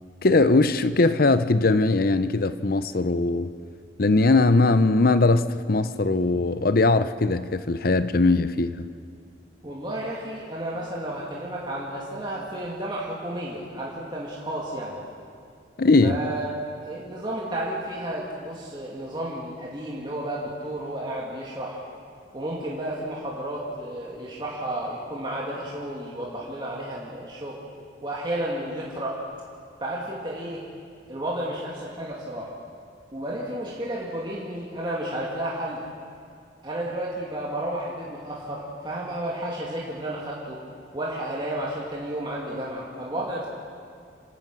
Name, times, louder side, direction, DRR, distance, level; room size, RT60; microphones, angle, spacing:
voice 1, 0.2-3.5 4.0-8.9 15.8-16.2, left 3 dB, 55° left, 0.7 m, -20 dB
voice 2, 9.6-15.0 16.0-16.5 16.8-21.8 22.3-27.6 28.0-29.3 29.8-30.6 31.1-32.5 33.1-35.8 36.6-40.6 40.9-43.5, right 1 dB, 25° right, 2.5 m, -32 dB
27.0 x 17.0 x 6.2 m
head